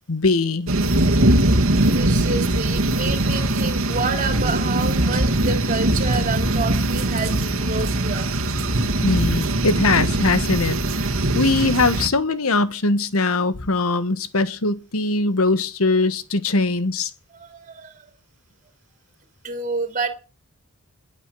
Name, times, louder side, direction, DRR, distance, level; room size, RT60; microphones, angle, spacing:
voice 1, 0.1-0.7 9.0-10.8 11.0-17.1, left 3 dB, 85° left, 1.3 m, -21 dB
sound 1, 0.7-12.1, right 1 dB, 70° right, 1.8 m, -21 dB
voice 2, 1.7-8.3 17.4-18.1 19.4-20.1, right 4 dB, 35° right, 2.8 m, -29 dB
21.0 x 8.2 x 6.1 m
head